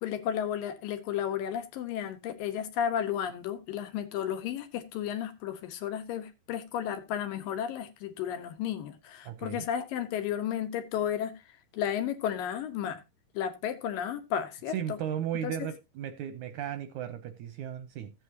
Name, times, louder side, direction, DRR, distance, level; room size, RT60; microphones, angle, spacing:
voice 1, 0.0-11.3 11.7-13.0 13.3-15.0 15.4-15.7, left 9 dB, 80° left, 2.8 m, -33 dB
voice 2, 9.3-9.6 14.7-18.1, right 10 dB, 80° right, 1.8 m, -35 dB
15.0 x 8.2 x 2.7 m
omnidirectional pair, 4.0 m